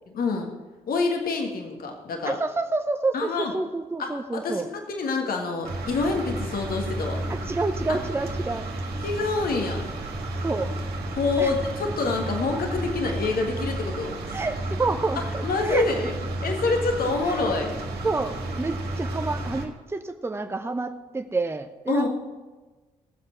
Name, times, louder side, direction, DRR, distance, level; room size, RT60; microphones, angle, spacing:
voice 1, 0.1-0.5 0.9-2.4 3.1-3.5 4.0-7.2 7.9-8.0 9.0-9.8 11.2-14.2 15.4-16.1 16.4-17.7 21.9-22.1, left 3 dB, 55° left, 2 dB, 1.6 m, -26 dB
voice 2, 2.2-4.7 7.5-8.7 10.4-10.7 11.4-11.5 14.3-15.8 17.0-17.5 18.0-22.1, right 3 dB, 15° right, 7 dB, 0.7 m, -29 dB
sound 1, 5.6-19.7, right 2 dB, 55° right, 1.6 m, -32 dB
16.5 x 7.6 x 4.4 m, 1.2 s
figure-of-eight pair, 40°, 19 cm